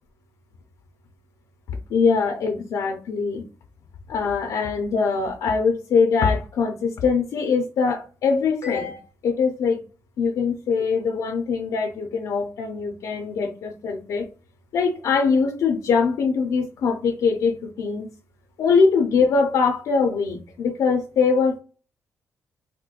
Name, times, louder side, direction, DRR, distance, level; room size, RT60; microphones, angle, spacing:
voice 1, 1.9-3.4 4.1-9.8 10.2-14.3 14.7-18.1 18.6-21.6, left 5 dB, 85° left, 3 dB, 0.6 m, -22 dB
4.4 x 2.2 x 2.4 m, 0.35 s
wide cardioid pair, 160°, 6 cm